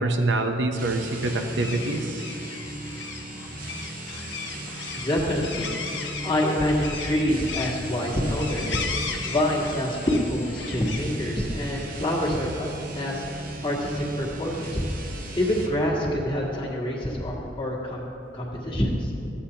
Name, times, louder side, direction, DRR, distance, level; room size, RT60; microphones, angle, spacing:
voice 1, 0.0-2.3, right 2 dB, 80° right, 4 dB, 0.8 m, -25 dB
sound 1, 0.7-15.8, right 2 dB, 50° right, 0.9 m, -38 dB
sound 2, 0.9-11.0, left 5 dB, 85° left, 1.0 m, -36 dB
voice 2, 4.9-5.7 6.2-8.8 9.3-12.7 12.9-13.2 13.6-14.8 15.3-18.1 18.3-19.1, left 1 dB, 30° left, -4 dB, 1.7 m, -26 dB
14.5 x 8.6 x 2.9 m, 2.9 s
head